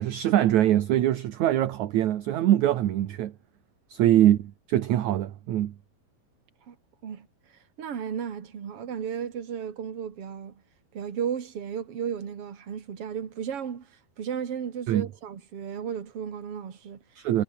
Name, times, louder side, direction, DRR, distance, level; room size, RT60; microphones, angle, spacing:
voice 1, 0.0-3.3 3.9-4.4 4.7-5.7 14.9-15.1 17.2-17.4, right 12 dB, 65° right, 2.4 m, -23 dB
voice 2, 7.8-10.5 10.9-13.9 14.2-17.2, right 8 dB, 45° right, 3.0 m, -34 dB
omnidirectional pair, 3.9 m